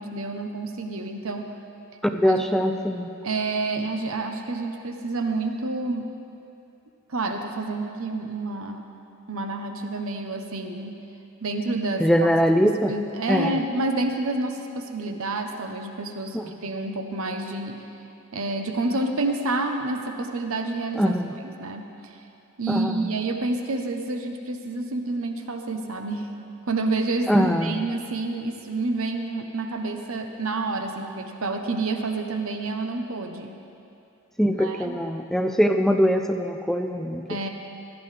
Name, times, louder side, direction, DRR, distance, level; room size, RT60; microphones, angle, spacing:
voice 1, 0.0-1.5 2.2-2.4 3.2-6.1 7.1-8.9 9.3-11.0 11.4-12.3 12.6-17.8 18.3-21.1 21.4-21.9 22.6-26.3 26.7-33.5 34.6-35.0 37.3-37.5, right 2 dB, 75° right, 5 dB, 0.9 m, -29 dB
voice 2, 2.0-3.1 12.0-12.9 13.3-13.6 16.3-16.4 21.0-21.3 22.7-23.1 27.3-27.8 34.4-37.3, equal, ahead, 5 dB, 0.4 m, -22 dB
16.5 x 12.5 x 3.3 m, 2.7 s
head